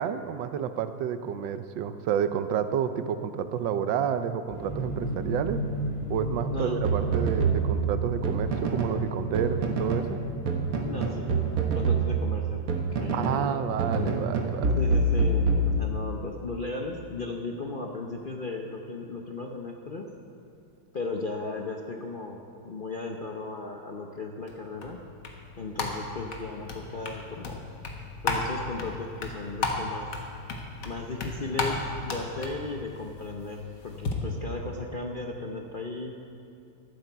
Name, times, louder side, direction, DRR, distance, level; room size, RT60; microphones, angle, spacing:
voice 1, 0.0-5.6 6.1-10.2 13.1-14.8, right 8 dB, 85° right, 10 dB, 1.4 m, -30 dB
sound 1, 4.5-11.8, equal, 25° left, 3.1 m, -35 dB
voice 2, 6.5-6.8 10.8-11.3 11.7-13.6 14.8-20.1 20.9-25.0 25.6-27.6 28.2-30.1 30.8-36.2, left 3 dB, 50° left, 1 dB, 0.6 m, -36 dB
sound 2, 6.8-9.0 9.3-10.1 10.5-13.5 13.8-16.2, right 3 dB, 50° right, 1.5 m, -26 dB
sound 3, 24.5-34.1, left 3 dB, 70° left, 1.9 m, -35 dB
16.0 x 12.0 x 4.6 m, 2.5 s
omnidirectional pair, 2.0 m